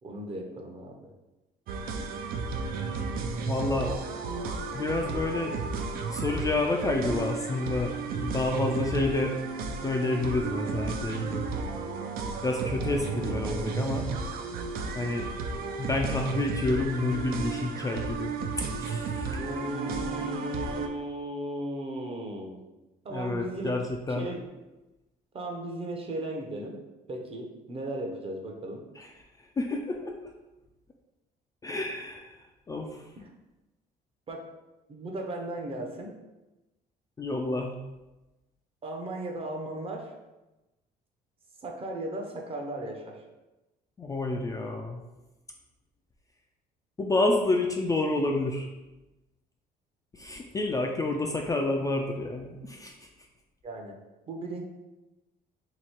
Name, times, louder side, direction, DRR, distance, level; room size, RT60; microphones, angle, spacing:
voice 1, 0.0-1.0 19.4-22.6 23.0-23.8 24.1-24.5 25.3-26.8 27.1-28.8 33.2-33.3 34.3-34.5 34.9-36.1 38.8-40.1 41.6-43.2 53.6-54.0 54.3-54.6, right 1 dB, 35° right, 1 dB, 0.7 m, -36 dB
sound 1, 1.7-20.9, right 4 dB, 60° right, 0.5 m, -33 dB
voice 2, 3.5-3.9 4.7-5.6 6.1-9.3 9.8-11.5 12.4-14.1 14.9-15.3 15.8-19.4 23.1-24.3 29.0-29.1 29.6-30.1 31.6-32.4 32.7-33.0 37.2-37.8 44.0-45.0 47.0-48.7 50.1-52.9, left 2 dB, 20° left, 2 dB, 0.3 m, -29 dB
3.0 x 2.7 x 4.4 m, 1.0 s
cardioid pair, 110°, 17 cm